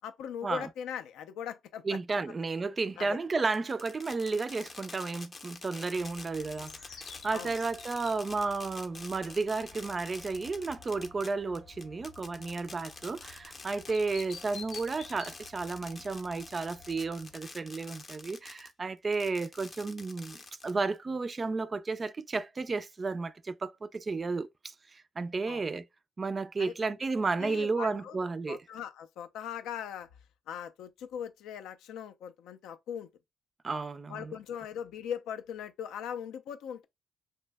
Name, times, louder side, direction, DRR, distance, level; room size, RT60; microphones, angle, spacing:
voice 1, 0.0-2.0 3.0-3.2 7.3-7.5 25.5-25.7 26.6-26.7 27.4-30.1 30.5-33.1 34.1-36.8, left 8 dB, 85° left, 0.4 m, -40 dB
voice 2, 1.9-25.9 26.2-28.6 33.6-34.3, right 3 dB, 30° right, 0.3 m, -33 dB
Fireworks, 3.5-18.7 19.1-21.0, left 3 dB, 30° left, 0.6 m, -47 dB
sound 1, 5.9-17.4, left 5 dB, 65° left, 0.7 m, -52 dB
2.6 x 2.1 x 3.3 m
cardioid pair, 90°, 0 cm